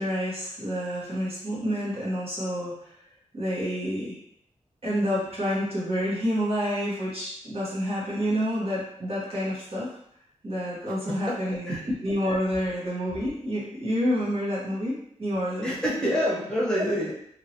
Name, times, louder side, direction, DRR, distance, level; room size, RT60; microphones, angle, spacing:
voice 1, 0.0-2.9 3.3-4.2 4.8-9.9 10.4-15.7, equal, 50° right, -7 dB, 1.3 m, -28 dB
voice 2, 11.1-11.8 15.6-17.1, equal, 5° left, -6 dB, 0.9 m, -27 dB
2.9 x 2.9 x 2.8 m, 0.69 s
wide cardioid pair, 85°, 13 cm